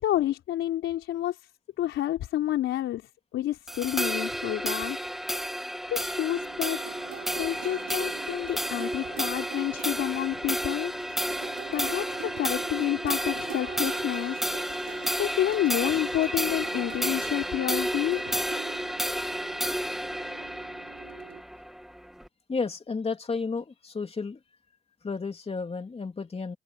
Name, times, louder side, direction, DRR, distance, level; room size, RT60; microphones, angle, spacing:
voice 1, 0.0-1.5 1.8-5.0 5.9-6.8 7.4-10.9 11.7-14.9 15.2-18.4, left 13 dB, 85° left, 4.0 m, -29 dB
sound 1, 3.7-22.3, equal, ahead, 2.4 m, -32 dB
sound 2, 6.2-21.4, right 12 dB, 80° right, 6.0 m, -44 dB
voice 2, 22.5-24.4 25.0-26.6, left 4 dB, 30° left, 3.3 m, -32 dB
cardioid pair, 90°, 20 cm